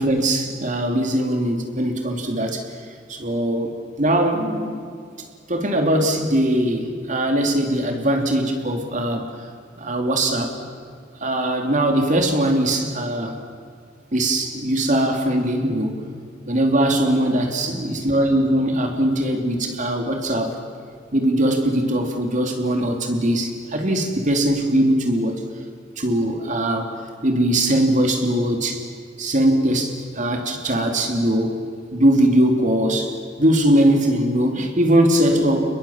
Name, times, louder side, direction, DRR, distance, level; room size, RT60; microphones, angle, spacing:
voice 1, 0.0-2.6 3.1-3.7 4.0-4.8 5.5-9.3 9.8-10.6 11.2-13.4 14.1-16.0 16.5-20.6 21.1-25.4 26.0-26.9 27.2-28.8 29.2-31.6 31.9-35.7, right 1 dB, 40° right, 4 dB, 2.9 m, -20 dB
30.0 x 21.5 x 7.4 m, 2.2 s
head